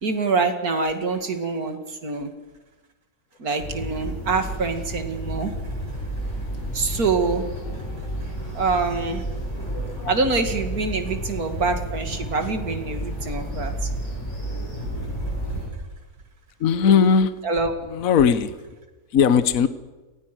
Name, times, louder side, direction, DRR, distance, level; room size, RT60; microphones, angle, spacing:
voice 1, 0.0-2.3 3.4-5.7 6.7-7.4 8.3-9.2 10.1-13.9 14.8-15.6 17.4-17.7, right 4 dB, 70° right, 7 dB, 2.8 m, -25 dB
sound 1, 3.6-15.7, right 1 dB, 45° left, 7.2 m, -31 dB
voice 2, 16.6-17.3 17.9-18.6 19.1-19.7, left 6 dB, 65° left, 13 dB, 1.4 m, -18 dB
28.5 x 19.5 x 6.2 m, 1.2 s
omnidirectional pair, 1.6 m